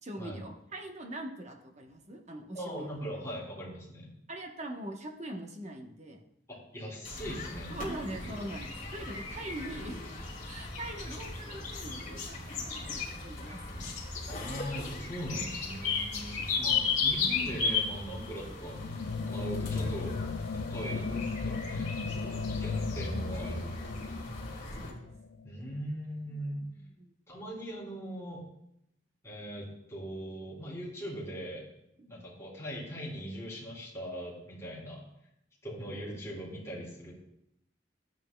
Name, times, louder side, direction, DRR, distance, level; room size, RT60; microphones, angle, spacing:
voice 1, 0.0-3.0 4.3-6.2 7.7-10.0 10.4-12.9 13.1-13.8 22.2-22.6 24.8-24.9 26.3-26.7 27.0-27.1 32.0-32.2, right 1 dB, 40° right, 3 dB, 1.0 m, -42 dB
voice 2, 2.5-4.1 6.5-7.7 14.3-18.8 19.3-20.2 20.5-23.9 25.4-26.7 27.3-28.4 29.2-31.6 32.1-35.0 35.6-37.1, equal, 15° left, -5 dB, 3.1 m, -40 dB
sound 1, 7.0-24.9, left 4 dB, 45° left, 2.3 m, -36 dB
sound 2, 18.7-25.5, left 4 dB, 65° left, 0.4 m, -36 dB
13.0 x 8.8 x 2.3 m, 0.78 s
head